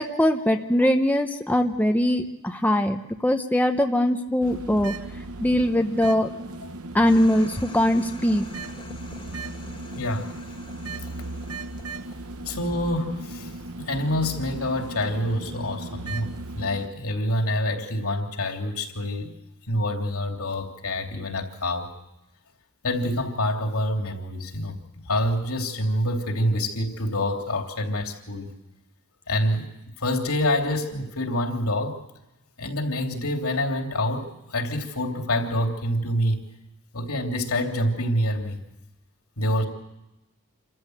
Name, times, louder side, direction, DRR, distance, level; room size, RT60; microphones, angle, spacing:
voice 1, 0.0-4.9 5.4-6.3 6.9-8.4, left 1 dB, 5° left, 0.9 m, -21 dB
sound 1, 4.4-16.9, right 2 dB, 75° right, 1.0 m, -37 dB
sound 2, 7.0-12.6, left 2 dB, 25° left, 2.0 m, -46 dB
voice 2, 10.0-10.4 12.4-13.5 13.8-19.3 19.7-21.9 22.8-24.8 25.1-28.5 29.3-29.7 30.0-32.0 32.6-36.4 36.9-38.6 39.4-39.6, left 1 dB, 75° left, 3.0 m, -26 dB
27.5 x 14.5 x 7.9 m
head